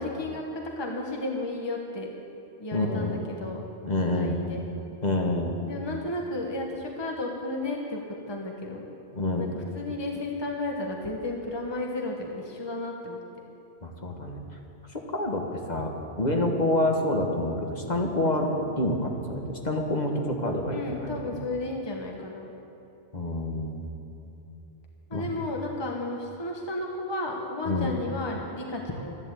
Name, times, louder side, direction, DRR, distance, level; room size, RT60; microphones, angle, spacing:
voice 1, 0.0-2.1 2.6-3.6 4.2-4.6 5.7-8.0 8.3-8.9 9.4-13.2 20.7-22.5 25.1-29.2, left 2 dB, 25° left, 0 dB, 1.2 m, -33 dB
voice 2, 2.7-3.1 3.8-4.4 5.0-5.6 9.1-9.4 13.8-14.4 14.9-21.4 23.1-23.8 25.1-25.3 27.6-27.9, left 1 dB, 40° left, 1 dB, 1.5 m, -27 dB
13.0 x 11.5 x 8.3 m, 3.0 s
omnidirectional pair, 1.2 m